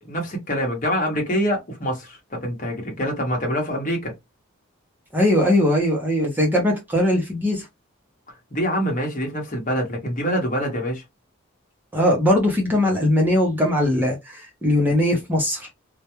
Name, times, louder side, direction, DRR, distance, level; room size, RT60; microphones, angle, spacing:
voice 1, 0.0-4.1 8.5-11.0, equal, 40° left, 1.0 m, -25 dB
voice 2, 5.1-7.7 11.9-15.7, left 1 dB, 10° right, 0.7 m, -20 dB
2.3 x 2.2 x 2.9 m
head